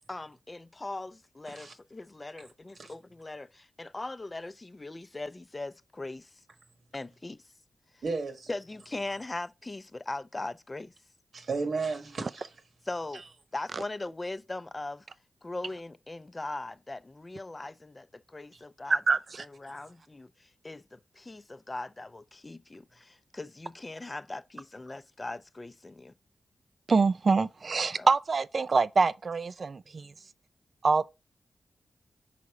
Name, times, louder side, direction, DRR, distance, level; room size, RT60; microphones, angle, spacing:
voice 1, 0.1-6.4 6.9-7.4 7.9-8.0 8.5-10.9 12.9-13.2 13.5-15.1 15.4-26.1 27.9-28.1, left 2 dB, 30° left, 0.5 m, -40 dB
voice 2, 8.0-8.5 11.3-12.5, right 4 dB, 70° right, 1.3 m, -33 dB
voice 3, 19.1-19.4 26.9-30.1 30.8-31.1, right 4 dB, 55° right, 0.4 m, -25 dB
5.0 x 4.2 x 4.8 m
cardioid pair, 55°, 0 cm